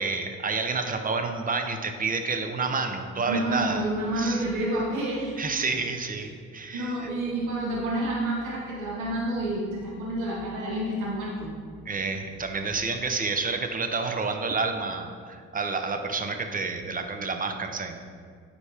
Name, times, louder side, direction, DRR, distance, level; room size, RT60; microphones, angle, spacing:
voice 1, 0.0-3.9 4.2-4.4 5.4-7.1 11.9-18.0, right 4 dB, 30° right, 6 dB, 0.6 m, -29 dB
voice 2, 3.3-5.4 6.7-11.5 12.1-12.2, right 1 dB, 85° right, -5 dB, 1.3 m, -29 dB
9.2 x 4.2 x 3.4 m, 2.1 s
cardioid pair, 90°, 30 cm